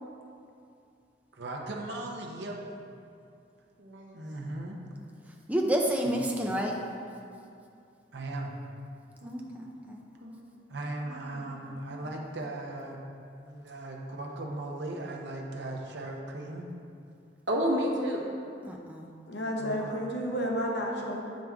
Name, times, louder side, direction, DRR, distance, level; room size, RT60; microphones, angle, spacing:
voice 1, 1.3-2.9 4.1-4.8 6.0-6.2 8.1-8.5 10.7-13.1 13.4-16.7 19.6-20.2, right 2 dB, 70° right, 0 dB, 0.8 m, -38 dB
voice 2, 3.8-4.1 9.2-9.5 10.2-10.5 11.2-11.5 17.5-18.3, equal, 90° right, -2 dB, 1.1 m, -31 dB
voice 3, 5.5-6.7 9.2-10.0 18.6-19.1, right 1 dB, 10° right, 0 dB, 0.5 m, -29 dB
voice 4, 19.3-21.3, equal, 70° left, -1 dB, 0.9 m, -31 dB
7.5 x 5.2 x 3.5 m, 2.5 s
head